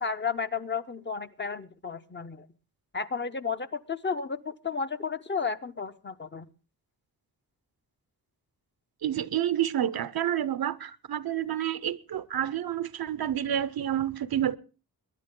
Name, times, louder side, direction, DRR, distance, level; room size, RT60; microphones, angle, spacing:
voice 1, 0.0-2.5 2.9-6.5, left 5 dB, 30° left, 0.7 m, -33 dB
voice 2, 9.0-14.6, right 11 dB, 70° right, 0.7 m, -29 dB
22.0 x 10.5 x 3.7 m
wide cardioid pair, 115°, 37 cm